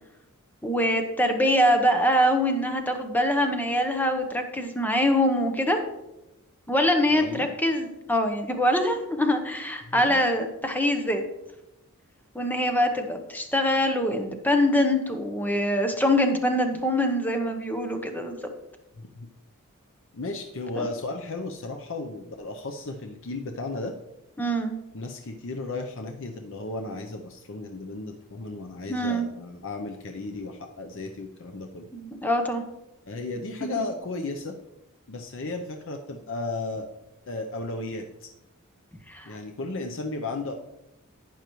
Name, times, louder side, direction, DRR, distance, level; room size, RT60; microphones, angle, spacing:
voice 1, 0.6-5.8 6.7-11.2 12.3-18.4 20.8-20.9 24.4-24.8 28.9-29.3 31.9-32.6 33.6-33.8 39.1-39.3, equal, 10° left, 5 dB, 0.9 m, -24 dB
voice 2, 7.1-7.5 9.9-10.2 19.1-19.3 20.1-24.0 24.9-31.9 33.1-34.6 35.1-36.9 37.3-38.3 39.3-40.5, left 2 dB, 60° left, 4 dB, 0.7 m, -34 dB
11.5 x 9.1 x 3.1 m, 0.93 s
head